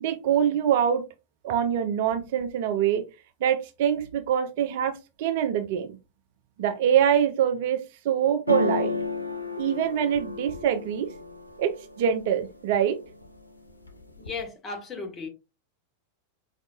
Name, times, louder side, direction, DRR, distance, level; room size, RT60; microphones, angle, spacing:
voice 1, 0.0-1.0 1.4-3.0 3.4-5.9 6.6-7.8 8.0-8.9 9.6-11.1 11.6-13.0, right 9 dB, 50° right, 0.5 m, -24 dB
sound 1, 8.5-12.3 12.8-13.4 13.7-14.5, left 3 dB, 80° left, 0.4 m, -32 dB
voice 2, 14.2-15.3, left 4 dB, 20° left, 1.1 m, -35 dB
4.8 x 2.6 x 2.4 m
figure-of-eight pair, 90°, 0 cm